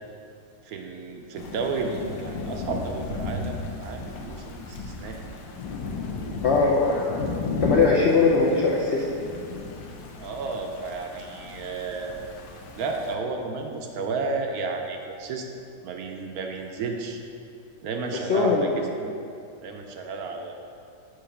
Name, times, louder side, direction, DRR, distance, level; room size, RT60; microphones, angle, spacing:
voice 1, 0.6-5.2 10.2-12.3 12.8-17.2 17.8-19.1 19.6-20.5, right 4 dB, 70° right, 3 dB, 1.0 m, -32 dB
Thunder / Rain, 1.3-13.1, left 3 dB, 85° left, 1.3 m, -34 dB
voice 2, 6.4-7.3 7.6-9.0 18.3-18.6, left 4 dB, 70° left, -3 dB, 0.6 m, -20 dB
6.3 x 3.8 x 5.8 m, 2.5 s
omnidirectional pair, 1.8 m